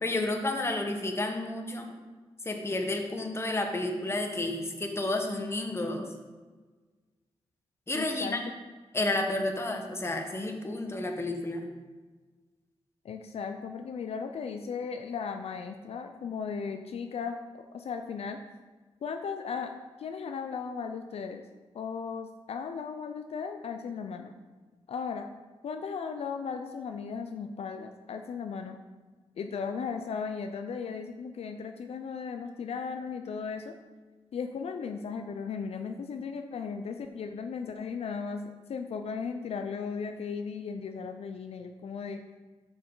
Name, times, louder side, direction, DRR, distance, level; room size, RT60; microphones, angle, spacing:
voice 1, 0.0-1.9 2.4-6.1 7.9-8.4 8.9-11.7, left 2 dB, 25° left, 3 dB, 1.0 m, -31 dB
voice 2, 7.9-8.4 13.0-17.4 17.7-18.4 19.0-21.4 21.7-24.3 24.9-25.3 25.6-28.8 29.4-33.7 34.3-42.2, left 5 dB, 70° left, 6 dB, 0.5 m, -36 dB
6.6 x 6.4 x 3.8 m, 1.3 s
cardioid pair, 85°, 11 cm